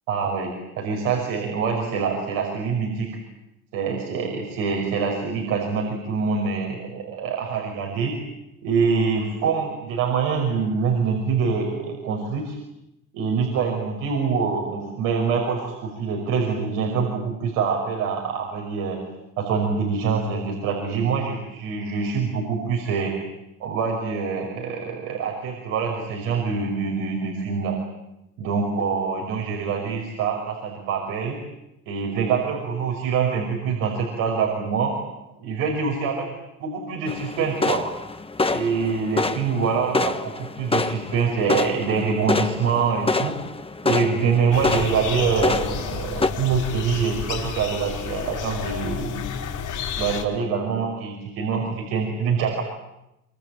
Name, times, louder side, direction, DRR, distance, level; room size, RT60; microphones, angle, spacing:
voice 1, 0.1-3.1 3.7-8.2 8.6-12.5 13.1-19.0 19.4-23.1 23.6-27.8 28.4-31.4 31.9-35.0 35.4-36.3 36.6-37.8 38.5-43.4 43.8-49.3 50.0-52.6, right 5 dB, 85° right, 0 dB, 5.7 m, -25 dB
sound 1, 37.1-46.3, left 3 dB, 15° left, 1.4 m, -27 dB
sound 2, 44.5-50.2, left 7 dB, 65° left, 5.3 m, -31 dB
25.5 x 25.0 x 8.9 m, 0.89 s
cardioid pair, 90°, 33 cm